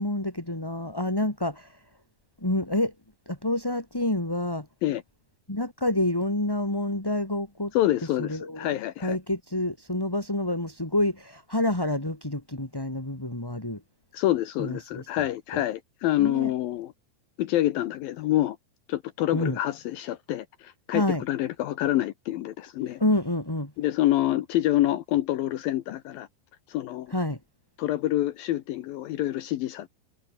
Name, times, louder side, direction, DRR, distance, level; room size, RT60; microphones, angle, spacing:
voice 1, 0.0-1.8 2.4-2.9 3.3-4.7 5.5-7.7 8.2-13.8 14.6-15.3 15.5-15.6 16.2-16.5 19.3-19.6 20.9-21.2 23.0-23.7 27.1-27.4, left 1 dB, 5° left, 2.1 m, -28 dB
voice 2, 7.7-9.2 14.1-16.9 17.4-18.6 18.9-23.0 23.8-26.3 26.7-27.1 27.8-29.9, left 14 dB, 75° left, 2.2 m, -27 dB
omnidirectional pair, 5.1 m